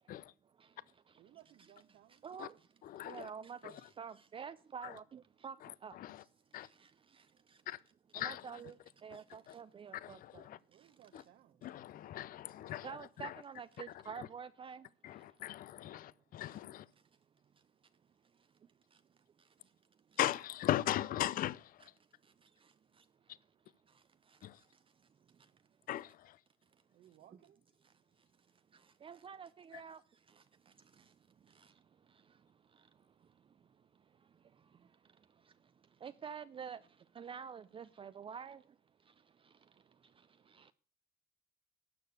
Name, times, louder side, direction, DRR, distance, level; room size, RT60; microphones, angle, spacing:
voice 1, 0.4-11.3 11.8-11.9 12.6-15.5 15.9-16.0 16.4-16.5 16.9-17.1 17.5-17.6 18.3-19.7 20.1-20.4 21.8-21.9 22.2-22.3 23.2-23.4 23.9-25.6 25.9-26.1 27.3-27.4 27.8-28.3 28.7-40.7, right 7 dB, 30° right, 0.5 m, -52 dB
voice 2, 1.2-2.2 10.7-11.8 26.9-27.6, right 12 dB, 65° right, 1.0 m, -62 dB
voice 3, 2.8-3.3 3.6-3.8 4.8-4.9 5.6-6.2 6.5-6.7 7.7-7.8 8.1-8.5 9.5-9.6 9.9-10.6 11.1-11.2 11.6-13.4 14.2-14.3 15.0-16.9 20.2-21.9 24.4-24.6 25.9-26.4 29.7-29.8, left 13 dB, 55° left, 0.5 m, -39 dB
12.0 x 6.8 x 8.1 m
cardioid pair, 110°, 17 cm